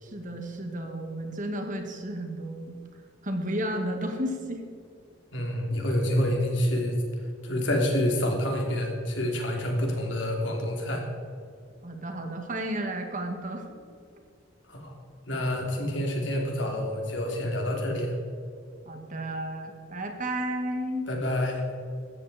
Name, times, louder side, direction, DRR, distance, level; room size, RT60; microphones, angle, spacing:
voice 1, 0.0-2.8 3.2-4.6 11.8-13.7 18.9-21.1, right 1 dB, 40° right, 4 dB, 1.9 m, -32 dB
voice 2, 5.3-7.0 7.4-11.0 14.7-14.9 15.3-18.1 21.1-21.6, left 1 dB, 70° left, 1 dB, 3.2 m, -27 dB
16.5 x 13.0 x 4.3 m, 2.4 s
head